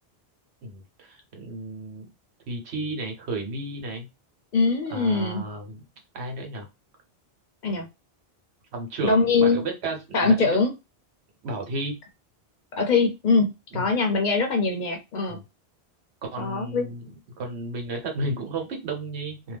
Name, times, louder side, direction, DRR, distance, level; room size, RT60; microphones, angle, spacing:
voice 1, 0.6-2.1 2.5-4.1 4.9-5.8 6.1-6.6 8.7-10.6 11.4-12.0 13.7-13.8 15.3-15.4 16.3-17.0 17.4-19.6, right 2 dB, 85° right, 3 dB, 1.2 m, -33 dB
voice 2, 4.5-5.4 7.6-7.9 9.0-9.6 10.1-10.7 12.7-15.4 16.4-16.9, left 4 dB, 55° left, 4 dB, 0.6 m, -22 dB
2.6 x 2.2 x 3.3 m, 0.25 s
omnidirectional pair, 1.1 m